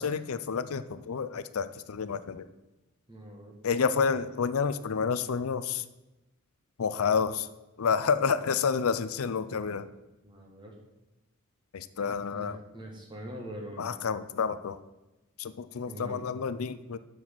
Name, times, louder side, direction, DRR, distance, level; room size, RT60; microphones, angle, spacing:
voice 1, 0.0-2.5 3.6-5.8 6.8-7.5 7.8-9.9 11.7-12.6 13.8-14.8 15.4-17.0, left 6 dB, 85° left, 14 dB, 0.5 m, -29 dB
voice 2, 3.1-3.5 8.2-8.4 10.2-10.7 12.3-13.9 15.9-16.3, equal, 20° right, 0 dB, 1.9 m, -43 dB
7.2 x 6.3 x 7.5 m, 1.0 s
head